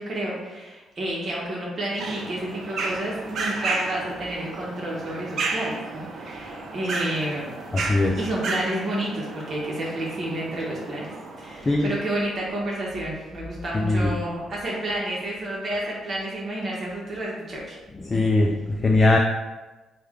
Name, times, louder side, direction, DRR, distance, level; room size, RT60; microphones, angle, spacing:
voice 1, 0.0-7.6 8.2-17.8, right 1 dB, 50° right, -4 dB, 0.8 m, -30 dB
sound 1, 2.0-12.4, right 3 dB, 65° right, 0.5 m, -33 dB
voice 2, 7.7-8.2 11.7-11.9 13.8-14.1 18.0-19.2, left 2 dB, 25° left, 1 dB, 0.3 m, -20 dB
3.2 x 2.2 x 3.5 m, 1.2 s
cardioid pair, 90°, 0 cm